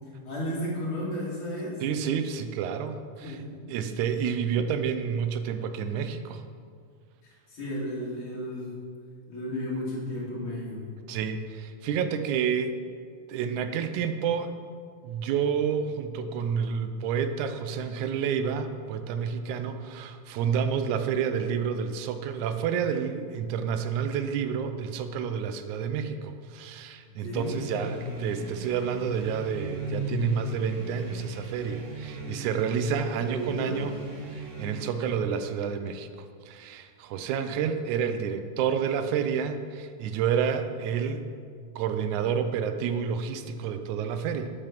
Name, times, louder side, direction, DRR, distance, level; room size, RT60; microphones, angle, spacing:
voice 1, 0.2-1.8 3.2-3.4 7.5-8.7 9.3-10.8 27.2-27.5 33.2-33.8, equal, 40° left, -6 dB, 3.4 m, -33 dB
voice 2, 1.8-3.4 3.7-6.4 11.1-12.7 13.3-14.6 15.0-34.0 34.3-36.1 36.5-41.2 41.8-44.5, right 7 dB, 75° right, 8 dB, 2.0 m, -29 dB
sound 1, 27.3-35.1, equal, 45° right, 0.9 m, -37 dB
9.0 x 8.5 x 5.9 m, 2.1 s
omnidirectional pair, 3.6 m